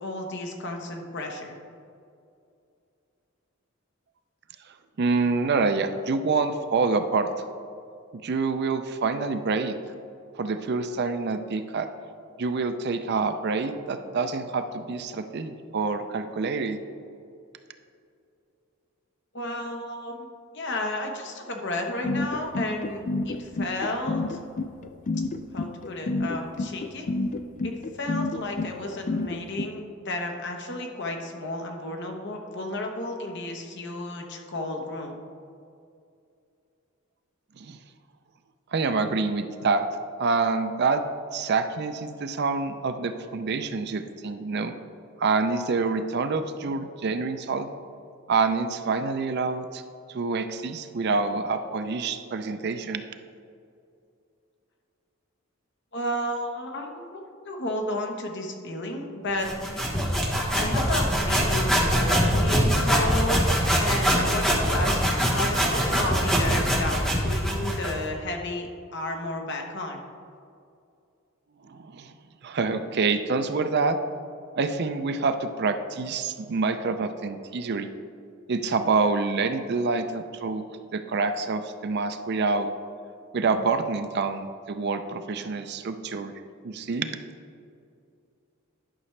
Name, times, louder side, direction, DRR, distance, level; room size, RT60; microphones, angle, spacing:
voice 1, 0.0-1.6 19.3-20.3 20.5-24.4 25.5-27.1 27.6-35.2 55.9-59.5 60.5-63.5 63.8-70.0, left 1 dB, 55° left, 2 dB, 1.1 m, -32 dB
voice 2, 5.0-7.3 8.2-9.7 10.4-11.9 12.4-16.8 37.6-37.8 38.7-39.8 40.2-41.1 41.3-44.7 45.2-47.7 48.3-49.8 50.1-53.0 71.7-72.1 72.4-74.0 74.6-77.9 78.5-80.6 80.9-82.7 83.3-86.3 86.6-87.1, right 4 dB, 50° right, 9 dB, 0.5 m, -26 dB
sound 1, 22.0-29.7, left 2 dB, 35° left, 0.3 m, -28 dB
sound 2, 59.4-68.0, equal, 5° left, 1.2 m, -23 dB
11.5 x 6.0 x 3.3 m, 2.5 s
head